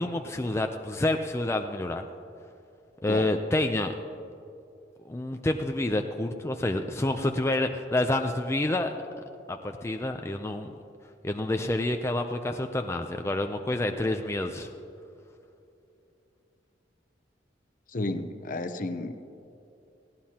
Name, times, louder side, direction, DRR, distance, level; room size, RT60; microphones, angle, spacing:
voice 1, 0.0-2.0 3.0-3.9 5.1-8.9 9.5-10.7 11.2-14.7, left 1 dB, 15° left, 5 dB, 0.5 m, -28 dB
voice 2, 17.9-19.3, left 2 dB, 50° left, 9 dB, 0.8 m, -32 dB
19.0 x 16.0 x 2.9 m, 2.7 s
head